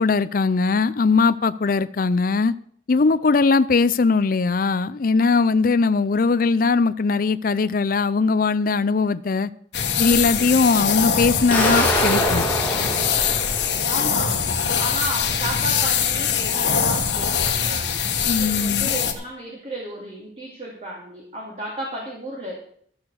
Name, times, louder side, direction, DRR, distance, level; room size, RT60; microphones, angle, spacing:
voice 1, 0.0-2.5 2.9-9.5 10.0-12.5 18.2-18.9, left 4 dB, 50° left, 0.5 m, -20 dB
sound 1, 9.7-19.1, left 7 dB, 85° left, 1.5 m, -23 dB
sound 2, 11.5-14.3, equal, 10° left, 2.1 m, -25 dB
voice 2, 13.9-22.5, right 1 dB, 35° right, 2.7 m, -33 dB
13.5 x 7.2 x 6.4 m
head